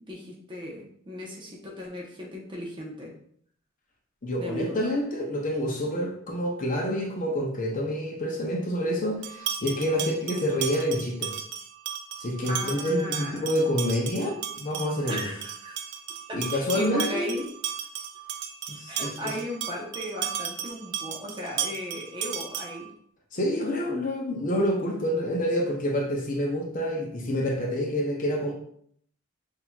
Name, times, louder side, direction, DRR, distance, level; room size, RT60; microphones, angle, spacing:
voice 1, 0.1-3.1 4.3-4.8 12.5-13.6 15.1-15.8 16.3-17.5 18.9-22.9, equal, 25° right, -2 dB, 0.9 m, -36 dB
voice 2, 4.2-11.3 12.2-15.3 16.3-17.3 18.7-19.3 23.3-28.5, equal, 40° left, 0 dB, 0.7 m, -28 dB
sound 1, 9.2-22.9, right 8 dB, 55° right, 0.3 m, -35 dB
5.8 x 2.8 x 2.3 m, 0.64 s
head